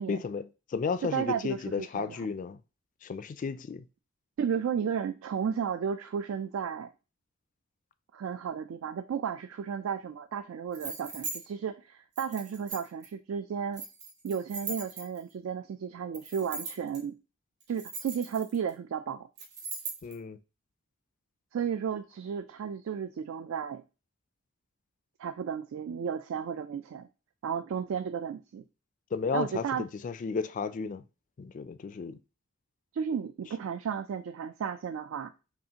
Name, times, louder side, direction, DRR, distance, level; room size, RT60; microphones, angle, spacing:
voice 1, 0.1-2.6 3.0-3.8 20.0-20.4 29.1-31.0 31.4-32.2, left 5 dB, 40° left, 0.3 m, -33 dB
voice 2, 1.1-2.2 4.4-6.9 8.1-13.8 14.2-17.1 17.7-19.3 21.5-23.8 25.2-27.1 27.4-28.6 29.3-29.8 32.9-35.3, right 7 dB, 80° right, 0.3 m, -33 dB
sound 1, 10.7-11.4 12.2-13.1 13.7-15.3 16.1-17.0 17.6-18.7 19.4-20.1, right 3 dB, 55° right, 1.7 m, -39 dB
5.4 x 2.5 x 2.8 m
head